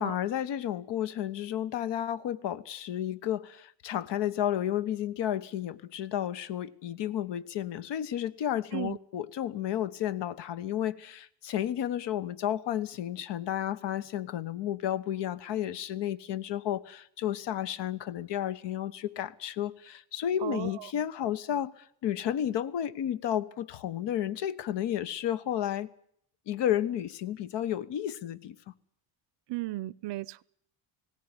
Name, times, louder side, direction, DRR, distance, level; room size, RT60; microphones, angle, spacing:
voice 1, 0.0-25.9 26.5-28.5, left 11 dB, 65° left, 1.2 m, -32 dB
voice 2, 20.4-20.9 29.5-30.4, right 18 dB, 65° right, 0.8 m, -35 dB
19.0 x 17.5 x 9.7 m
supercardioid pair, 90°, 46 cm